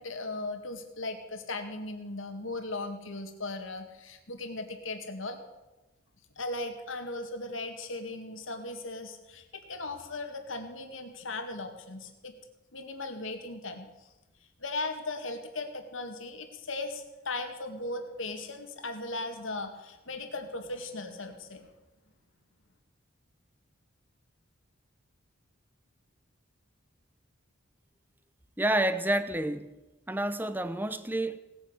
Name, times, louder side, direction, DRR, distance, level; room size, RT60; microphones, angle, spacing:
voice 1, 0.0-5.4 6.4-12.3 12.7-13.9 14.6-21.7, left 2 dB, 70° left, 2.1 m, -37 dB
voice 2, 28.6-29.7 30.1-31.4, right 1 dB, 10° right, 0.7 m, -29 dB
18.5 x 9.7 x 8.0 m
head